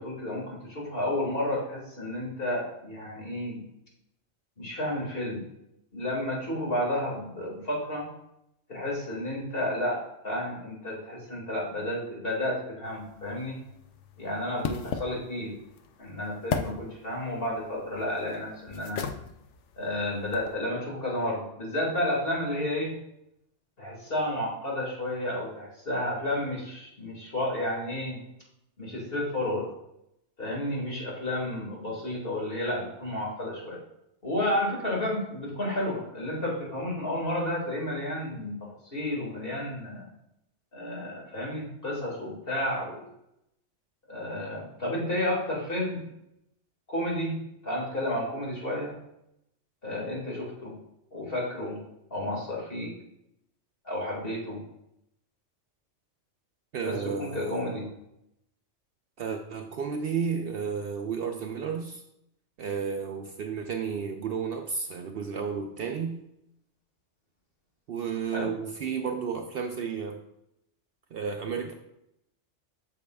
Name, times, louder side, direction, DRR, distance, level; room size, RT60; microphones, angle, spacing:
voice 1, 0.0-3.6 4.6-5.5 5.9-8.1 8.7-13.6 14.2-15.5 16.0-19.1 19.8-22.9 23.8-28.2 28.8-29.7 30.4-33.8 34.2-40.1 40.7-43.0 44.1-46.0 46.9-47.4 47.6-48.9 49.8-50.8 51.1-51.8 52.1-52.9 53.8-54.6 56.8-57.9 68.3-68.5, left 1 dB, 50° left, -3 dB, 2.2 m, -31 dB
sound 1, 12.8-20.5, left 7 dB, 75° left, 0.9 m, -38 dB
voice 2, 56.7-57.9 59.2-62.0 62.6-66.2 67.9-70.2 71.1-71.7, right 6 dB, 60° right, 4 dB, 0.7 m, -32 dB
8.3 x 6.6 x 2.3 m, 0.81 s
omnidirectional pair, 1.2 m